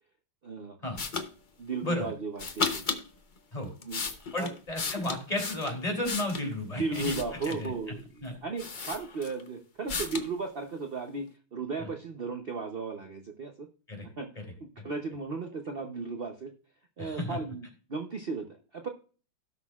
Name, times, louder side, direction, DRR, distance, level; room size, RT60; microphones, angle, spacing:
voice 1, 0.4-0.8 1.6-2.8 3.8-4.0 4.4-4.5 6.7-13.7 14.2-16.5 17.0-18.9, right 4 dB, 50° right, 4 dB, 0.6 m, -36 dB
sound 1, 1.0-1.3 2.4-3.0 3.6-6.5 6.9-7.7 8.2-8.3 8.6-9.5 9.9-10.3, left 4 dB, 45° left, 0.6 m, -34 dB
voice 2, 1.8-2.1 3.5-3.7 4.3-7.2 7.4-7.7 8.2-8.4 13.9-14.1 14.3-14.4 14.8-14.9 17.0-17.4, left 1 dB, 20° left, 2 dB, 3.2 m, -33 dB
17.5 x 6.2 x 2.4 m, 0.38 s
omnidirectional pair, 2.2 m